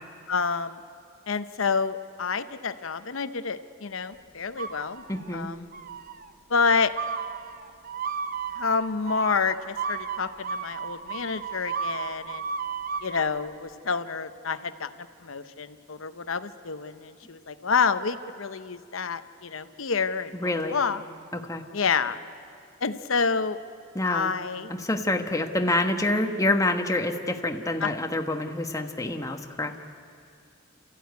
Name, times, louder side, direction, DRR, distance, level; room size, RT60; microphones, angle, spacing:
voice 1, 0.3-0.8 1.3-5.0 5.3-5.6 6.5-6.9 8.6-12.5 13.0-14.9 15.2-20.4 20.7-21.0 21.7-22.2 22.8-23.6 24.0-24.7 27.8-27.9, left 5 dB, 70° left, 11 dB, 0.9 m, -28 dB
sound 1, 4.6-5.3 5.7-6.3 7.0-13.3, right 6 dB, 45° right, 0.9 m, -34 dB
voice 2, 5.1-5.5 20.3-20.8 21.3-21.6 23.9-24.3 24.7-29.7, left 2 dB, 15° left, 5 dB, 1.3 m, -27 dB
29.0 x 14.5 x 9.5 m, 2.4 s
head